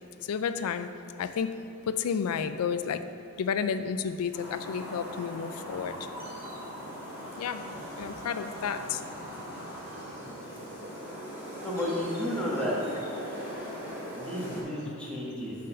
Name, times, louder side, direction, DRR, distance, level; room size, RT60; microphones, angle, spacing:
voice 1, 0.2-3.1 3.4-6.0 7.4-7.7 8.0-9.0, left 6 dB, 75° left, 11 dB, 0.4 m, -31 dB
sound 1, 4.3-14.6, equal, 10° right, 1.6 m, -40 dB
voice 2, 11.6-12.8 14.2-15.7, left 1 dB, 5° left, -6 dB, 1.4 m, -33 dB
6.5 x 4.0 x 6.5 m, 2.7 s
head